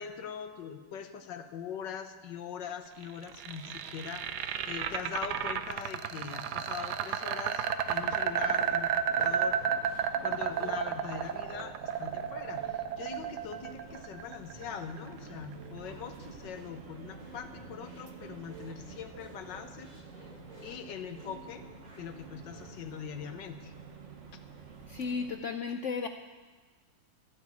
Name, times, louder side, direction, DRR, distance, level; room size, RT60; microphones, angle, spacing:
voice 1, 0.0-8.9 9.2-9.6 10.2-19.9 20.2-20.3 20.6-21.6 21.9-23.7, left 7 dB, 70° left, 8 dB, 1.6 m, -42 dB
sound 1, 3.0-15.1, right 8 dB, 65° right, 1.2 m, -32 dB
sound 2, 7.4-23.4, right 2 dB, 25° right, 1.6 m, -53 dB
sound 3, 7.8-25.3, right 5 dB, 45° right, 1.3 m, -50 dB
voice 2, 24.9-26.1, left 5 dB, 90° left, 6 dB, 0.6 m, -34 dB
13.5 x 8.9 x 8.4 m, 1.4 s
omnidirectional pair, 2.1 m